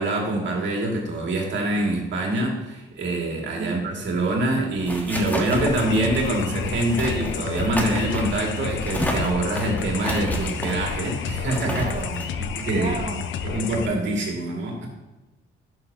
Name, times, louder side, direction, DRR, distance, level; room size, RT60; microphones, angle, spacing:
voice 1, 0.0-11.8 12.4-12.9 13.4-14.9, right 2 dB, 65° right, -1 dB, 2.3 m, -25 dB
sound 1, 4.2-13.5, equal, 10° left, 1.3 m, -32 dB
sound 2, 5.5-13.9, left 7 dB, 75° left, 0.6 m, -30 dB
voice 2, 11.7-12.3 12.7-13.2, right 5 dB, 40° right, 2 dB, 0.8 m, -32 dB
10.5 x 6.3 x 2.9 m, 1.1 s
cardioid pair, 90°, 20 cm